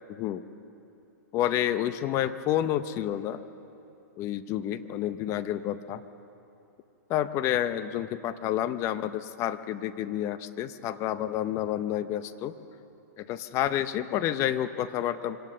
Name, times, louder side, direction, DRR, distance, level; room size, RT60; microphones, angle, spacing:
voice 1, 0.1-0.4 1.3-3.4 4.2-6.0 7.1-12.5 13.2-15.4, left 11 dB, 30° left, 12 dB, 0.8 m, -29 dB
24.5 x 18.0 x 6.7 m, 2.9 s
hypercardioid pair, 135°, 9 cm